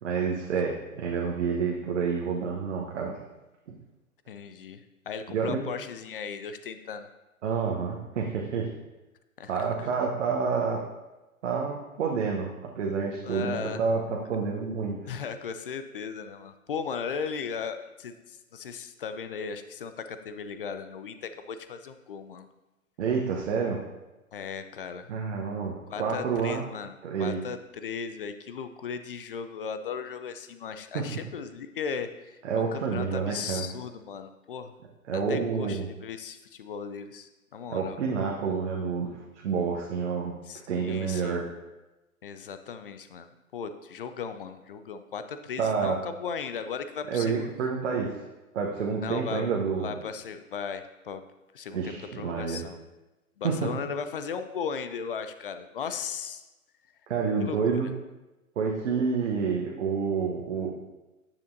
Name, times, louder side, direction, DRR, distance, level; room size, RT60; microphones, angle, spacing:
voice 1, 0.0-3.2 5.3-5.6 7.4-8.7 9.5-10.8 11.4-15.0 23.0-23.8 25.1-26.6 27.0-27.4 30.9-31.1 32.4-33.6 35.1-35.9 37.7-40.4 40.7-41.4 45.6-46.0 47.1-48.2 48.5-50.0 51.7-52.6 53.4-53.7 57.1-57.9 58.6-60.7, right 5 dB, 55° right, -1 dB, 1.0 m, -28 dB
voice 2, 4.3-4.8 5.1-7.1 9.4-9.9 13.2-13.8 15.1-22.5 24.3-25.1 25.9-26.9 27.2-34.7 35.1-38.0 40.5-41.4 42.2-47.5 49.0-49.5 49.8-51.2 51.5-52.8 53.4-56.4 57.4-57.9, left 6 dB, 40° left, 9 dB, 0.4 m, -37 dB
9.3 x 7.0 x 2.6 m, 1.1 s
figure-of-eight pair, 120°, 43 cm